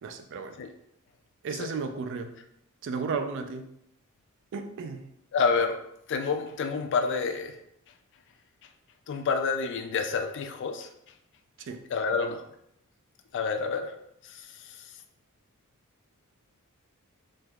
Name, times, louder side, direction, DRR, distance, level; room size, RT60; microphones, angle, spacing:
voice 1, 0.0-0.6 1.4-2.3 2.8-3.7 4.5-5.0 11.7-11.8, right 5 dB, 60° right, 7 dB, 0.4 m, -34 dB
voice 2, 5.3-5.8 6.1-7.6 9.1-10.9 11.9-12.4 13.3-13.9 14.3-14.5, left 5 dB, 60° left, 6 dB, 0.4 m, -28 dB
3.3 x 3.0 x 2.3 m, 0.77 s
head